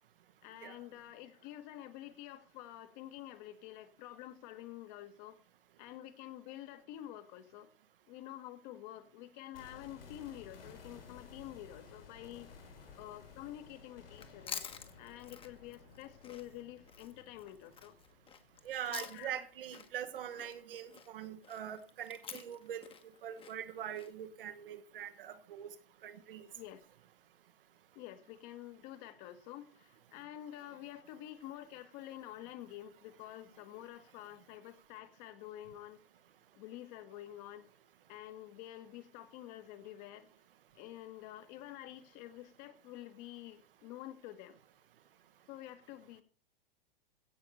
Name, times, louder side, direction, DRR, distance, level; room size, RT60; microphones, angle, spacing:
voice 1, 0.4-5.4 5.8-7.7 8.1-14.7 15.0-18.0 18.9-19.5 20.3-20.6 26.5-26.8 28.0-36.0 36.6-37.7 38.1-40.3 40.8-44.6 45.5-46.2, left 13 dB, 45° left, 9 dB, 1.7 m, -49 dB
sound 1, 9.5-19.5 19.8-19.9, left 5 dB, 75° left, 4.5 m, -56 dB
Chewing mastication, 14.1-19.5 19.7-24.1, left 7 dB, 20° left, 1.4 m, -49 dB
voice 2, 18.6-25.7 26.0-26.5, right 10 dB, 65° right, 10 dB, 1.6 m, -43 dB
16.5 x 5.9 x 6.9 m, 0.42 s
hypercardioid pair, 105°, 29 cm